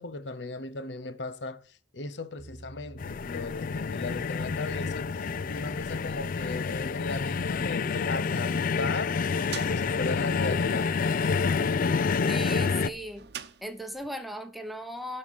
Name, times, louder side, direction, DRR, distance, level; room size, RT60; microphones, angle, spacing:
voice 1, 0.0-9.2 9.5-10.9, left 3 dB, 75° left, 0.9 m, -37 dB
sound 1, 2.4-7.9, right 2 dB, 35° right, 0.5 m, -49 dB
sound 2, 3.0-12.9, left 5 dB, 50° left, 0.4 m, -28 dB
sound 3, 9.1-14.2, right 7 dB, 65° right, 0.8 m, -47 dB
voice 2, 12.3-13.3 13.6-15.2, equal, ahead, 1.0 m, -37 dB
11.0 x 4.3 x 7.3 m
head